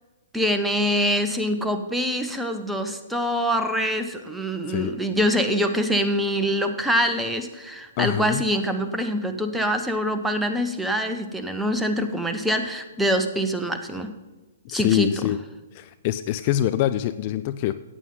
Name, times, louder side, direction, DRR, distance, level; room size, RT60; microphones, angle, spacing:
voice 1, 0.3-14.1 14.7-15.1, equal, 5° right, 6 dB, 1.0 m, -24 dB
voice 2, 8.0-8.4 14.6-15.4 15.7-17.7, left 13 dB, 40° left, 12 dB, 0.4 m, -24 dB
14.5 x 9.2 x 3.9 m, 1.2 s
figure-of-eight pair, 120°, 0 cm